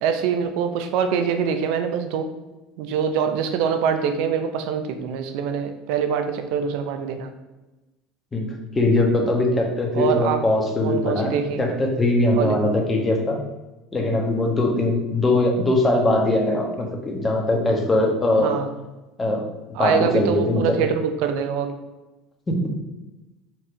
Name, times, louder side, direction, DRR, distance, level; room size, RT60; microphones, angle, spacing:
voice 1, 0.0-2.3 2.8-7.3 9.9-10.4 10.8-11.7 12.4-12.6 16.5-16.6 18.4-18.7 19.7-21.7, right 7 dB, 70° right, 7 dB, 0.7 m, -24 dB
voice 2, 8.3-13.4 13.9-18.5 19.2-20.7 22.5-22.7, left 2 dB, 20° left, 1 dB, 1.5 m, -21 dB
4.6 x 4.3 x 5.0 m, 1.1 s
hypercardioid pair, 80°, 0 cm